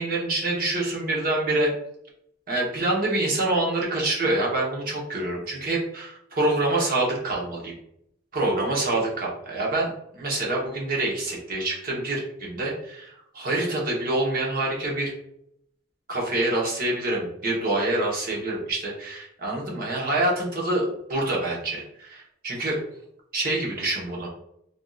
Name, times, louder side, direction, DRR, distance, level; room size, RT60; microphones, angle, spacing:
voice 1, 0.0-1.7 2.5-7.7 8.3-9.9 10.2-15.1 16.1-22.8 23.3-24.3, right 2 dB, 50° right, -3 dB, 1.0 m, -26 dB
3.5 x 2.6 x 2.4 m, 0.75 s
head